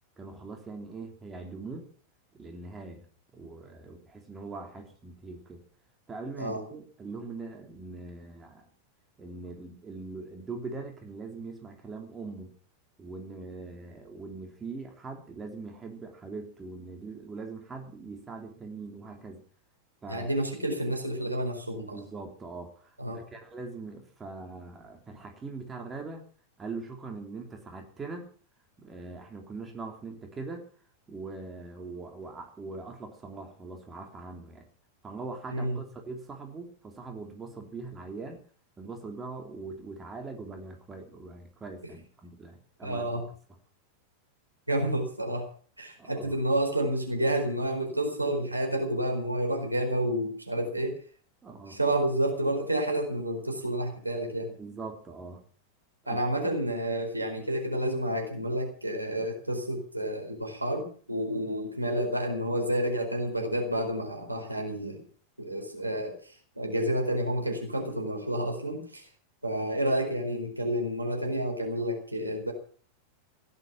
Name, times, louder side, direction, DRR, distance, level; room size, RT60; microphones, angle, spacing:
voice 1, 0.2-1.9 2.3-3.1 3.3-5.6 6.1-8.7 9.2-12.5 13.0-19.4 20.0-20.3 21.9-26.2 26.6-28.3 28.8-30.7 31.1-34.7 35.0-38.4 38.8-43.1 46.0-46.4 51.4-51.8 54.6-55.4 56.0-56.2, right 3 dB, 15° right, 3 dB, 3.5 m, -41 dB
voice 2, 20.1-22.0 23.0-23.2 35.5-35.8 41.8-41.9 42.8-43.2 44.7-45.5 45.8-50.9 51.7-54.5 56.1-65.0 65.4-69.1 69.4-72.5, right 1 dB, 85° right, 3 dB, 4.4 m, -30 dB
16.0 x 11.5 x 7.0 m, 0.43 s
figure-of-eight pair, 90°, 0 cm